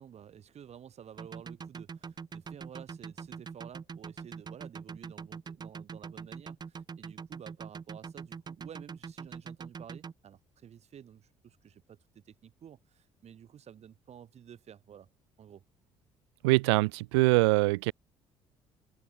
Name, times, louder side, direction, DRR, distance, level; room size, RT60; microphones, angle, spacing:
voice 1, 0.0-15.1 15.4-15.6, right 9 dB, 50° right, 3.3 m, -51 dB
sound 1, 1.2-10.1, right 5 dB, 30° right, 0.9 m, -43 dB
voice 2, 16.4-17.9, right 24 dB, 75° right, 0.5 m, -23 dB
hypercardioid pair, 50°, 14 cm